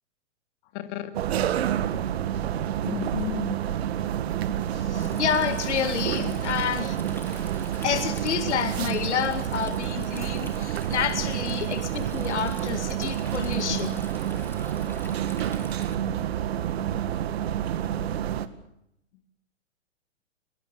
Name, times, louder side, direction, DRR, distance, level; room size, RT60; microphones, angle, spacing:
voice 1, 0.7-1.1 2.8-3.7 6.1-6.5 13.7-13.8 17.7-17.8, left 12 dB, 40° left, 8 dB, 2.9 m, -34 dB
sound 1, 1.1-18.5, right 10 dB, 60° right, 2.0 m, -29 dB
voice 2, 4.7-7.0 7.3-7.4 7.8-14.0, left 8 dB, 65° left, 9 dB, 2.3 m, -29 dB
Stream, 4.9-15.9, left 3 dB, 5° left, 3.2 m, -48 dB
24.5 x 21.5 x 7.0 m, 0.81 s
hypercardioid pair, 130°, 36 cm